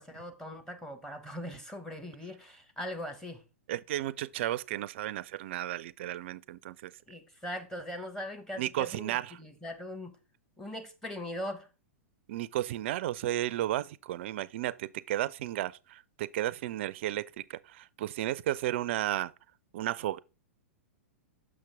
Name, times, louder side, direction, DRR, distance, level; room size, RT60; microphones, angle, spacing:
voice 1, 0.0-3.4 7.1-10.1 10.6-11.7, left 1 dB, 5° left, 1.1 m, -40 dB
voice 2, 3.7-6.9 8.6-9.4 12.3-19.3 19.7-20.2, right 14 dB, 55° right, 0.4 m, -33 dB
6.3 x 5.9 x 3.4 m
figure-of-eight pair, 105°, 8 cm